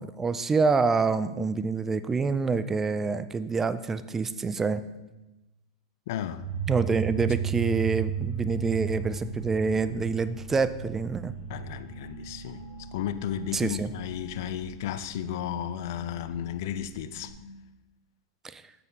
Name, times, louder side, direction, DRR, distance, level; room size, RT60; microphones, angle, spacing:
voice 1, 0.0-4.8 6.7-11.3 13.5-13.9 18.4-18.6, right 4 dB, 15° right, 0.4 m, -27 dB
voice 2, 6.1-6.5 11.5-12.7 12.9-17.3, left 10 dB, 60° left, 0.5 m, -34 dB
sound 1, 6.4-17.3, right 8 dB, 35° right, 2.7 m, -36 dB
8.2 x 6.7 x 3.8 m
hypercardioid pair, 95°, 2 cm